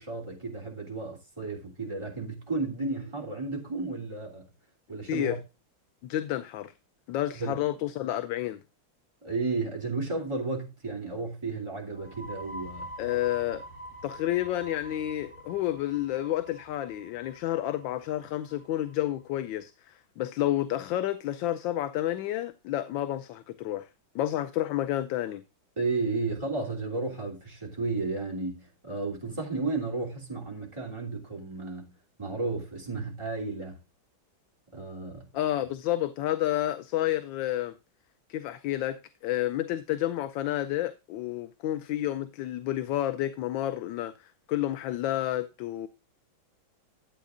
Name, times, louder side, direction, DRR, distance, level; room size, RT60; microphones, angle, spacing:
voice 1, 0.0-4.4 4.9-5.4 7.4-7.6 9.2-12.9 25.8-31.9 32.2-33.8 34.7-35.2, right 3 dB, 15° right, 3.0 m, -33 dB
voice 2, 6.0-6.7 7.1-8.6 13.0-13.6 14.0-23.9 24.1-25.4 35.3-37.7 38.3-45.9, left 13 dB, 75° left, 1.3 m, -30 dB
sound 1, 11.9-19.4, equal, 30° left, 1.8 m, -46 dB
13.0 x 8.1 x 2.5 m
omnidirectional pair, 2.2 m